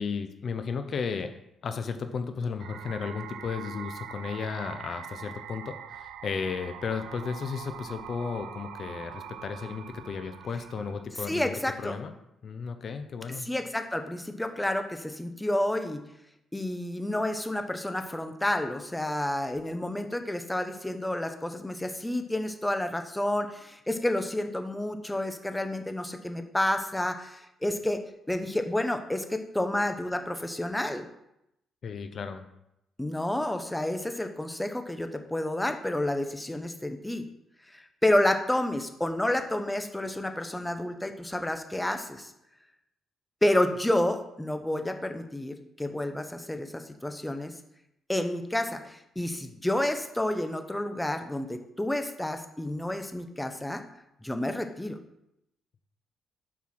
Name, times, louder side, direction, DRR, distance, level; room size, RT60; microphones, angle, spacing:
voice 1, 0.0-1.3 1.6-12.1 12.4-13.5 31.8-32.4, left 5 dB, 55° left, 9 dB, 0.6 m, -34 dB
sound 1, 2.6-11.0, right 9 dB, 90° right, 0.5 m, -43 dB
voice 2, 11.3-12.0 13.4-16.0 16.5-31.0 33.0-37.2 37.7-42.3 43.4-47.5 48.1-53.8 54.2-55.0, left 1 dB, 10° left, 7 dB, 0.9 m, -30 dB
7.3 x 4.7 x 5.9 m, 0.82 s
cardioid pair, 90°, 0 cm